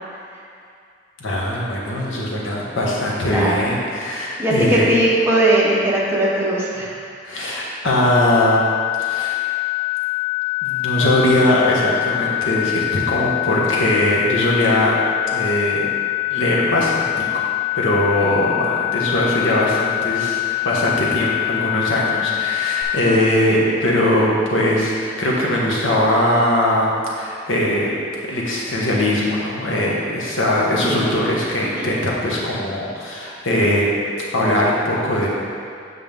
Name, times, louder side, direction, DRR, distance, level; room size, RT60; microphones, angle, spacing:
voice 1, 1.2-5.0 7.2-8.7 9.0-9.4 10.6-15.0 15.3-15.9 16.3-17.5 17.7-27.9 28.3-33.9 34.3-35.3, left 1 dB, 85° left, -4 dB, 1.4 m, -20 dB
voice 2, 4.4-6.9 30.6-30.7 31.8-31.9, right 1 dB, 15° right, -5 dB, 1.0 m, -19 dB
sound 1, 7.9-22.8, left 22 dB, 5° left, 0.5 m, -24 dB
7.8 x 6.0 x 3.6 m, 2.4 s
head